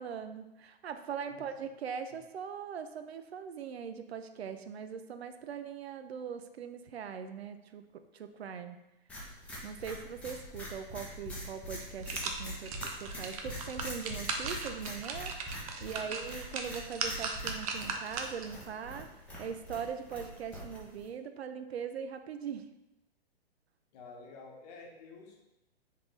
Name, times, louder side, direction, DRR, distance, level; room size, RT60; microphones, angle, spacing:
voice 1, 0.0-8.8 9.6-15.3 15.8-19.1 19.4-22.7, right 7 dB, 85° right, 9 dB, 0.5 m, -41 dB
sound 1, 9.1-21.1, equal, 5° left, 0.7 m, -44 dB
sound 2, 11.2-11.3 11.7-18.6 19.0-19.1, right 4 dB, 35° right, 0.5 m, -38 dB
voice 2, 15.8-16.1 23.9-25.4, left 4 dB, 40° left, 0 dB, 1.0 m, -50 dB
3.9 x 3.7 x 3.1 m, 0.93 s
hypercardioid pair, 140°, 31 cm